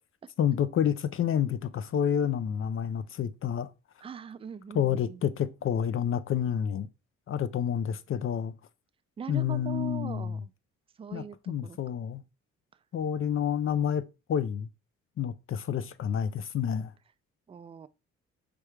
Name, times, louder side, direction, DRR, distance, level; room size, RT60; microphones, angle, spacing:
voice 1, 0.4-3.7 4.7-6.9 7.3-8.5 9.3-10.4 11.1-12.2 12.9-14.7 15.2-16.9, left 9 dB, 45° left, 0.4 m, -29 dB
voice 2, 4.0-5.2 9.2-10.5 11.0-11.8 17.5-17.9, right 7 dB, 20° right, 0.3 m, -41 dB
4.6 x 3.4 x 3.1 m
cardioid pair, 90°, 30 cm